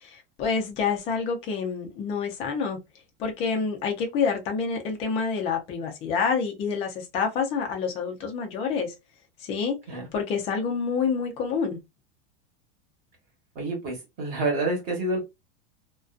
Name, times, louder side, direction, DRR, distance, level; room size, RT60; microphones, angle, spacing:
voice 1, 0.0-2.8 3.2-8.9 9.4-9.8 10.1-11.8, left 5 dB, 20° left, 0.4 m, -27 dB
voice 2, 13.5-15.2, right 2 dB, 25° right, 1.0 m, -28 dB
2.4 x 2.2 x 2.3 m
supercardioid pair, 170°, 33 cm